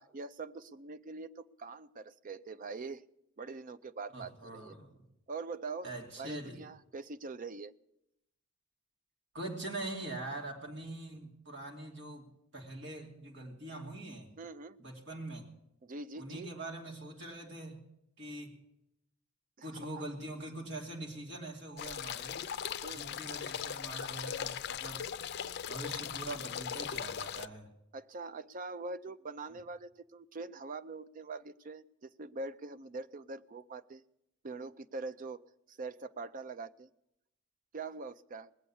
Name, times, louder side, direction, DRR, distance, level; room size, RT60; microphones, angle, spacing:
voice 1, 0.0-3.0 3.4-4.7 5.3-5.9 6.2-7.7 14.4-14.8 15.8-16.5 19.6-19.7 19.9-20.0 22.8-23.2 27.9-34.0 34.4-35.4 35.7-36.9 37.7-38.5, right 3 dB, 45° right, 13 dB, 0.5 m, -43 dB
voice 2, 4.1-5.0 5.8-6.6 9.3-12.3 12.5-14.3 14.8-15.4 16.2-17.8 18.2-18.6 19.6-22.4 22.9-25.0 25.7-27.7, right 2 dB, 60° right, 0 dB, 2.7 m, -43 dB
sound 1, 21.8-27.5, left 9 dB, 55° left, 0.4 m, -39 dB
20.5 x 8.2 x 7.1 m, 0.82 s
head